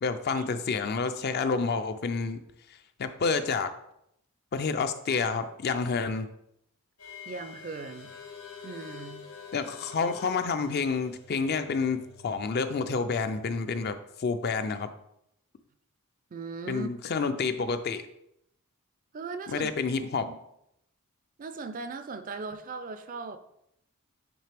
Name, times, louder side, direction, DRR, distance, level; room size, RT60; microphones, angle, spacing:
voice 1, 0.0-2.4 3.0-3.7 4.5-6.3 9.5-14.9 16.7-18.0 19.5-20.3, left 4 dB, 45° left, 10 dB, 0.4 m, -29 dB
sound 1, 7.0-13.9, left 6 dB, 85° left, 1.7 m, -48 dB
voice 2, 7.3-8.1 8.6-9.3 16.3-16.9 19.1-19.7 20.0-20.3 21.4-23.4, right 4 dB, 35° right, 10 dB, 0.4 m, -38 dB
8.7 x 3.2 x 3.4 m, 0.78 s
head